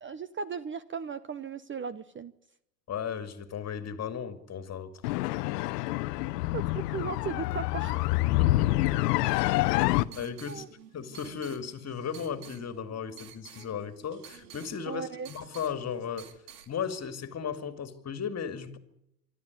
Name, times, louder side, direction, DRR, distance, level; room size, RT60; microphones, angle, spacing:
voice 1, 0.0-2.3 6.5-8.1 10.5-10.7 14.9-15.3, right 6 dB, 25° right, 0.9 m, -37 dB
voice 2, 2.9-4.9 8.4-8.9 9.2-9.8 10.1-10.6 10.9-16.3 16.7-18.8, left 7 dB, 30° left, 2.5 m, -36 dB
sound 1, 5.0-10.0, left 18 dB, 70° left, 1.0 m, -27 dB
sound 2, 9.6-16.7, right 9 dB, 75° right, 3.0 m, -51 dB
25.0 x 12.5 x 9.7 m
hypercardioid pair, 95°, 49 cm